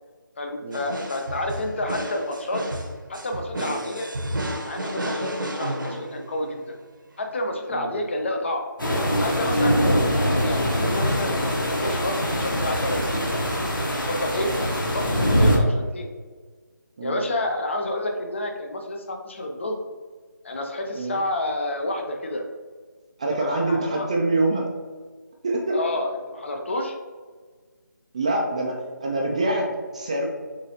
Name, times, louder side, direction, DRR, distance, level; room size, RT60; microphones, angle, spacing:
voice 1, 0.4-2.6 3.1-4.1 4.6-6.8 7.2-8.6 9.2-13.2 13.8-14.5 14.9-16.1 17.0-19.8 20.4-22.4 23.4-24.1 25.7-26.9, left 1 dB, 35° left, 3 dB, 0.6 m, -29 dB
sound 1, 0.7-6.6, right 1 dB, 75° right, 0.9 m, -32 dB
sound 2, 8.8-15.6, equal, 85° left, 1.5 m, -23 dB
voice 2, 23.2-24.7 25.4-25.8 28.1-30.2, right 2 dB, 20° right, -1 dB, 0.4 m, -26 dB
6.5 x 2.7 x 2.9 m, 1.5 s
figure-of-eight pair, 160°, 11 cm